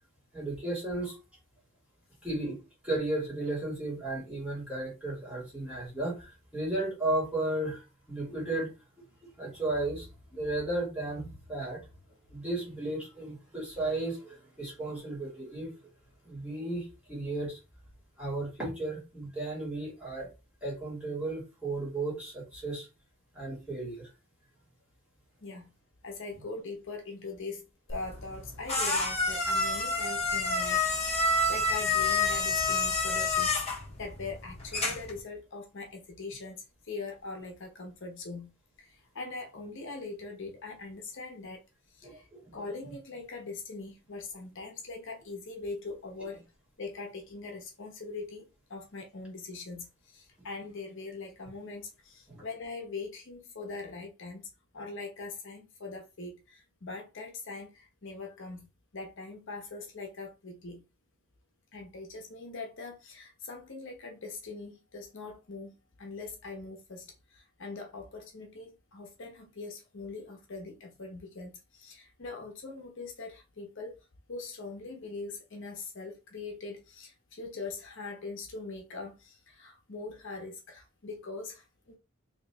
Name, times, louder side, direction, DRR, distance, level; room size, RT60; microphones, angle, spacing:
voice 1, 0.3-1.2 2.2-2.6 2.8-8.7 9.2-11.9 12.3-15.8 16.2-17.6 18.2-20.3 20.6-22.9 23.3-24.1 42.0-42.6 42.8-42.9 52.3-52.4, right 2 dB, 5° right, 1.9 m, -34 dB
voice 2, 25.4-25.7 26.0-38.5 38.8-41.6 41.9-46.4 46.8-54.5 54.7-58.7 58.9-60.8 61.7-82.0, left 3 dB, 60° left, 0.9 m, -42 dB
sound 1, 27.9-35.2, left 3 dB, 30° left, 1.0 m, -29 dB
3.1 x 2.9 x 3.4 m
head